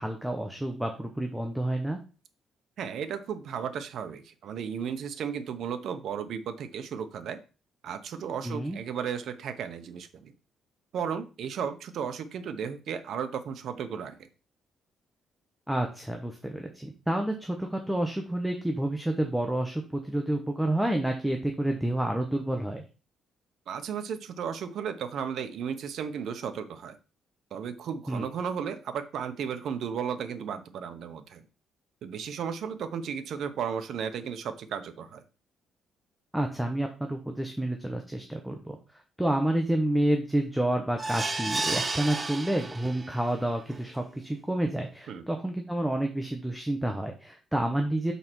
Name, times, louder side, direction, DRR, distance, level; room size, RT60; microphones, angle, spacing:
voice 1, 0.0-2.0 8.4-8.8 15.7-22.8 28.1-28.3 36.3-38.8 39.2-48.1, right 1 dB, 5° right, 3 dB, 0.9 m, -29 dB
voice 2, 2.8-7.4 7.8-10.3 10.9-14.2 23.7-27.0 27.5-31.4 32.0-35.2 45.1-45.2, right 7 dB, 65° right, 9 dB, 0.9 m, -34 dB
sound 1, 41.0-43.2 43.7-43.8 44.1-44.2, right 3 dB, 25° right, 0.6 m, -32 dB
5.6 x 4.3 x 6.2 m, 0.33 s
cardioid pair, 135°, 0 cm